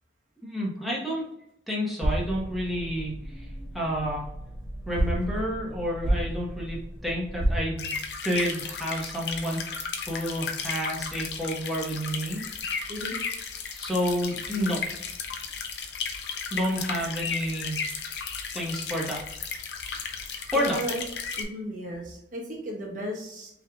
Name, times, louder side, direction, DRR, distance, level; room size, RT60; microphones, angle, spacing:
voice 1, 0.4-1.2 1.7-3.5 3.7-4.3 4.9-8.0 8.2-12.9 13.7-14.8 16.5-17.8 18.5-19.2 20.5-20.8, equal, ahead, -5 dB, 1.1 m, -30 dB
sound 1, 2.0-7.6, right 1 dB, 15° right, 1.4 m, -31 dB
sound 2, 7.8-21.4, left 5 dB, 65° left, 0.6 m, -34 dB
voice 2, 20.6-21.0 21.4-23.5, equal, 45° right, -2 dB, 1.0 m, -34 dB
5.4 x 3.4 x 2.4 m, 0.79 s
head